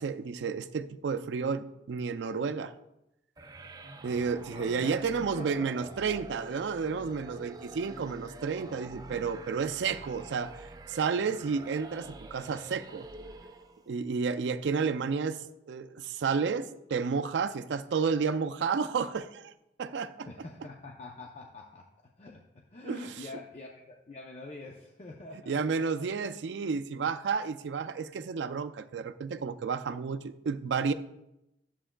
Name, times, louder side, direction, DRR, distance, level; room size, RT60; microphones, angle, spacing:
voice 1, 0.0-2.7 4.0-13.1 13.9-19.5 19.8-20.3 22.8-23.1 25.5-30.9, right 5 dB, 85° right, 10 dB, 0.4 m, -31 dB
sound 1, 3.4-13.9, right 2 dB, 20° right, 0.4 m, -47 dB
voice 2, 4.4-5.7 20.3-21.9 22.2-25.8, left 2 dB, 40° left, 0 dB, 0.6 m, -45 dB
11.0 x 7.2 x 2.2 m, 0.86 s
head